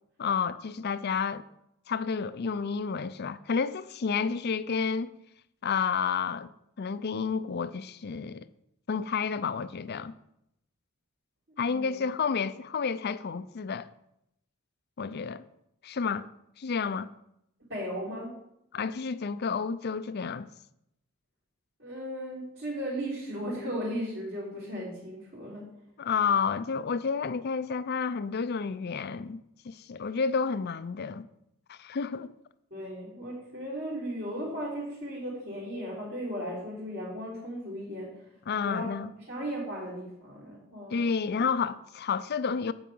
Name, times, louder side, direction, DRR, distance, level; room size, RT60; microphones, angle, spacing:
voice 1, 0.2-1.4 1.9-5.1 5.6-6.5 6.8-8.5 8.9-10.1 11.6-13.9 15.0-15.4 15.8-16.3 16.6-17.1 18.7-20.5 26.0-31.3 31.7-32.3 38.5-39.1 40.9-42.7, left 5 dB, 50° left, 0.4 m, -30 dB
voice 2, 11.5-12.0 17.7-18.4 21.8-25.7 32.7-38.3 38.6-41.0 41.4-41.5, equal, 55° right, 3.2 m, -36 dB
9.1 x 4.9 x 7.7 m
head